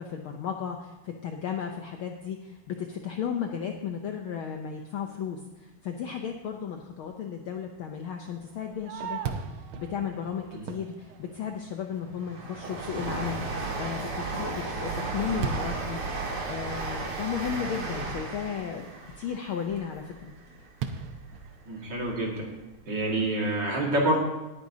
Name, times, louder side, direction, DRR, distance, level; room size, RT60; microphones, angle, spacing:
voice 1, 0.0-9.2 9.5-16.1 16.5-18.9 19.2-20.3, left 7 dB, 85° left, 3 dB, 1.1 m, -34 dB
Fireworks, 8.4-11.9 12.4-12.5 13.0-13.4 13.9-18.7 20.8-22.1, right 6 dB, 85° right, 1.1 m, -39 dB
Train, 11.2-21.4 21.8-22.7 23.0-23.1, right 3 dB, 60° right, 3.0 m, -35 dB
voice 2, 21.7-22.5 22.9-24.2, right 1 dB, 40° right, -1 dB, 2.3 m, -27 dB
19.0 x 9.2 x 2.8 m, 1.1 s
omnidirectional pair, 3.3 m